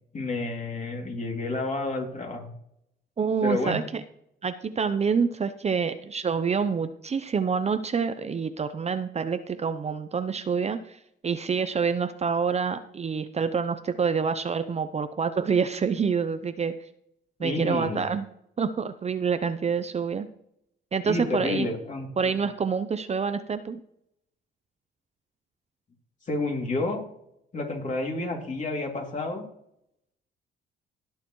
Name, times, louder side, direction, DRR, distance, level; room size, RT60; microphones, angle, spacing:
voice 1, 0.1-2.5 3.4-3.8 17.4-18.0 21.1-22.3 26.3-27.0 27.5-29.5, left 2 dB, 40° left, 1 dB, 2.7 m, -30 dB
voice 2, 3.2-4.0 4.4-16.7 17.4-18.3 18.6-20.3 20.9-21.7 22.2-23.8, right 6 dB, 35° right, 10 dB, 0.6 m, -27 dB
17.0 x 6.6 x 3.1 m, 0.75 s
cardioid pair, 90°, 20 cm